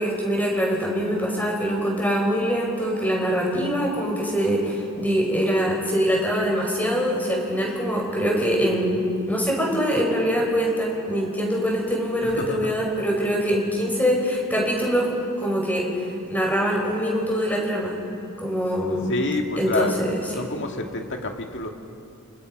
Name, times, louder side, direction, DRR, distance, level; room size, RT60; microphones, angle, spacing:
voice 1, 0.0-15.1 15.4-15.9 16.3-17.9 18.4-19.1 19.6-19.9, equal, 10° left, -2 dB, 5.5 m, -23 dB
voice 2, 12.2-12.8 19.0-20.0 20.3-21.7, left 2 dB, 55° left, 3 dB, 2.1 m, -28 dB
29.5 x 27.5 x 5.3 m, 2.6 s
head